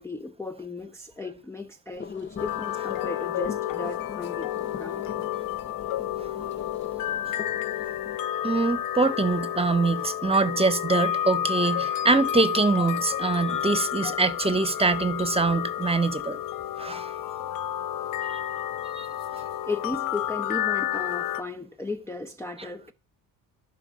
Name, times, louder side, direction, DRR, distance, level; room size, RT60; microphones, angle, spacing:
voice 1, 0.0-5.0 19.7-22.9, left 3 dB, 5° left, 0.7 m, -35 dB
sound 1, 1.9-8.2, left 6 dB, 30° left, 1.0 m, -41 dB
sound 2, 2.4-21.4, left 11 dB, 65° left, 0.6 m, -30 dB
voice 2, 8.4-16.4 16.8-17.1 18.3-18.4 18.9-19.1, right 3 dB, 15° right, 1.2 m, -24 dB
12.0 x 4.8 x 6.3 m
cardioid pair, 105°, 37 cm